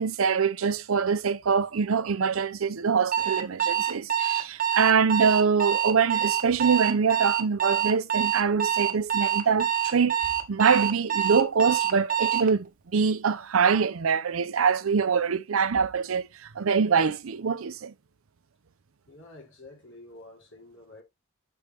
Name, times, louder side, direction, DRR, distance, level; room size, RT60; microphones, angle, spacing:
voice 1, 0.0-10.2 10.5-17.9, right 6 dB, 80° right, 0.6 m, -24 dB
Alarm, 3.1-12.5, right 10 dB, 40° right, 0.9 m, -26 dB
voice 2, 19.1-21.0, left 2 dB, 65° left, 3.2 m, -49 dB
6.7 x 4.8 x 3.3 m
head